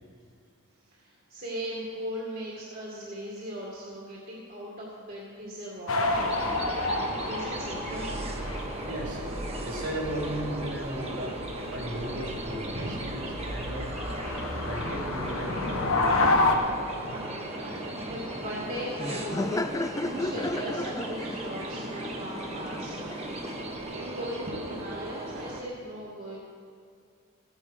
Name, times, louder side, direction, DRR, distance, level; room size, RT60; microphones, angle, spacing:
voice 1, 0.9-8.2 12.6-13.1 17.0-19.7 20.0-22.9 23.9-26.4, equal, 45° right, -5 dB, 2.2 m, -38 dB
sound 1, 5.9-16.5, left 2 dB, 90° left, 1.5 m, -30 dB
sound 2, 6.1-25.6, right 2 dB, 30° right, 1.4 m, -37 dB
voice 2, 8.8-9.2 9.6-11.3 11.7-13.9 14.5-16.0, equal, 65° right, -2 dB, 3.9 m, -36 dB
Laughter, 17.5-23.8, left 2 dB, 15° left, 0.3 m, -35 dB
14.5 x 10.5 x 6.5 m, 2.2 s
head